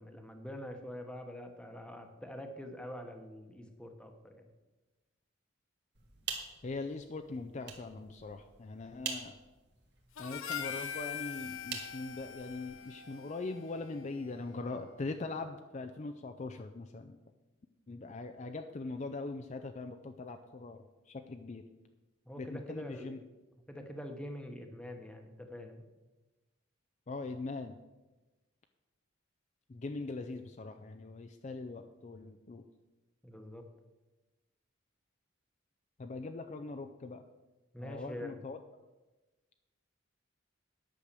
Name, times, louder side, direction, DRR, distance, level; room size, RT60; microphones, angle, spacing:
voice 1, 0.0-4.5 22.3-23.1 23.7-25.9 33.2-33.7 37.7-38.4, left 1 dB, 5° left, 5 dB, 1.0 m, -45 dB
sound 1, 5.9-12.8, right 6 dB, 55° right, 1.9 m, -46 dB
voice 2, 6.6-9.4 10.2-17.2 17.9-21.6 22.4-23.2 27.1-27.8 29.7-32.6 36.0-37.2 37.8-38.6, left 3 dB, 35° left, 6 dB, 0.4 m, -41 dB
Harmonica, 10.2-14.6, left 8 dB, 85° left, 0.8 m, -43 dB
10.0 x 6.4 x 6.7 m, 1.1 s
head